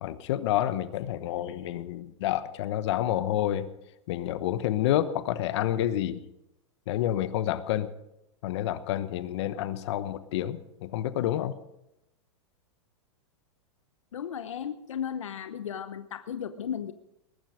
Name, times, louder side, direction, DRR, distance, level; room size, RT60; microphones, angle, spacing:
voice 1, 0.0-3.7 4.1-6.2 6.9-7.9 8.4-11.5, left 12 dB, 60° left, 13 dB, 1.1 m, -29 dB
voice 2, 14.1-16.9, left 8 dB, 85° left, 11 dB, 0.9 m, -35 dB
20.5 x 12.0 x 5.0 m, 0.87 s
hypercardioid pair, 120°, 16 cm